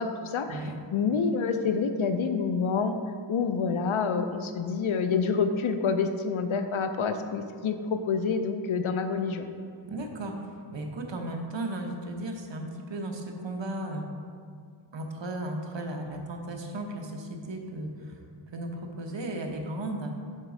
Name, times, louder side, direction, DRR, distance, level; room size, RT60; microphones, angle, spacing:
voice 1, 0.0-0.6 0.9-3.0 3.3-9.5, left 5 dB, 90° left, 8 dB, 0.6 m, -27 dB
voice 2, 9.9-14.1 14.9-18.2 18.5-20.1, right 1 dB, 65° right, 3 dB, 0.9 m, -35 dB
6.6 x 4.1 x 4.8 m, 2.2 s
wide cardioid pair, 80°, 47 cm